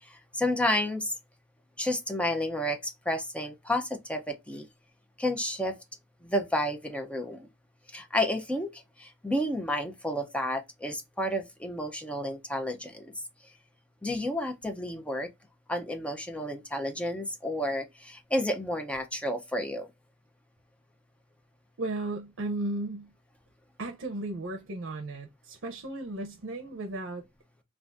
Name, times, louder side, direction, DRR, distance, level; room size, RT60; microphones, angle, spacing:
voice 1, 0.0-1.1 1.8-4.7 5.2-5.8 6.2-7.5 7.9-13.1 14.0-15.3 15.7-19.9, left 1 dB, 5° left, 0.5 m, -31 dB
voice 2, 21.8-23.1 23.8-27.2, right 2 dB, 65° right, 0.6 m, -35 dB
2.5 x 2.4 x 3.3 m
head